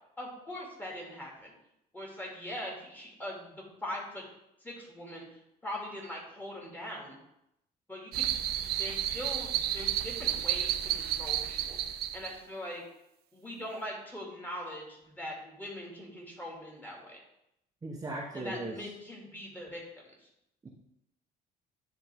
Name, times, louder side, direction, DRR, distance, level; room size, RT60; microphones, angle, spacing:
voice 1, 0.2-1.5 1.9-4.2 4.6-7.2 7.9-8.3 8.7-11.8 12.1-12.8 13.3-17.2 18.3-20.3, left 1 dB, 10° left, -2 dB, 2.2 m, -42 dB
sound 1, 8.1-12.3, right 12 dB, 70° right, 0.5 m, -31 dB
voice 2, 17.8-18.7 20.6-20.7, right 2 dB, 20° right, -2 dB, 0.9 m, -37 dB
10.0 x 3.6 x 3.4 m, 0.82 s
cardioid pair, 110°, 17 cm